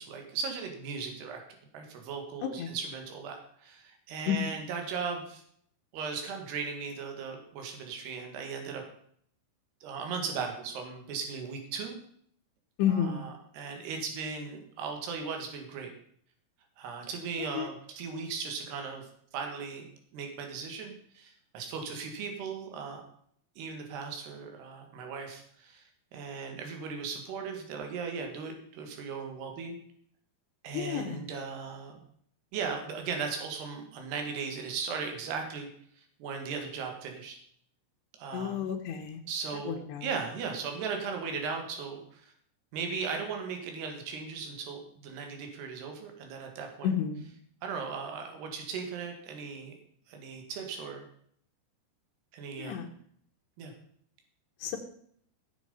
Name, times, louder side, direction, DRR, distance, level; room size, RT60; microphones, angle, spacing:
voice 1, 0.0-1.4 1.7-5.4 5.9-8.8 9.8-12.0 12.9-15.9 16.8-19.9 20.1-23.0 23.6-29.8 30.6-32.0 32.5-35.7 36.0-37.4 38.2-38.7 39.3-42.3 42.7-46.9 47.6-49.7 50.1-51.1 52.3-52.8 53.6-53.7, right 5 dB, 75° right, 3 dB, 4.0 m, -37 dB
voice 2, 2.4-2.7 4.3-4.4 12.8-13.3 17.6-17.7 30.7-31.2 38.3-39.2 39.7-40.1 46.8-47.3 52.6-52.9 54.6-54.8, left 9 dB, 90° left, 1 dB, 3.3 m, -31 dB
16.5 x 7.5 x 5.5 m, 0.64 s
omnidirectional pair, 4.8 m